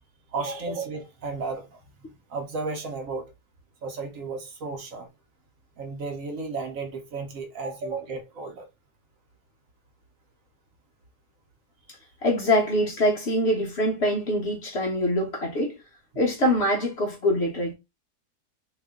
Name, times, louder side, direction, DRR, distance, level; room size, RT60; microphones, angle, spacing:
voice 1, 0.3-1.8 2.3-3.3 3.8-5.1 5.8-8.7, right 4 dB, 65° right, 1.1 m, -33 dB
voice 2, 12.2-15.8 16.2-17.7, left 1 dB, 55° left, 0.8 m, -24 dB
2.9 x 2.6 x 3.5 m
omnidirectional pair, 1.7 m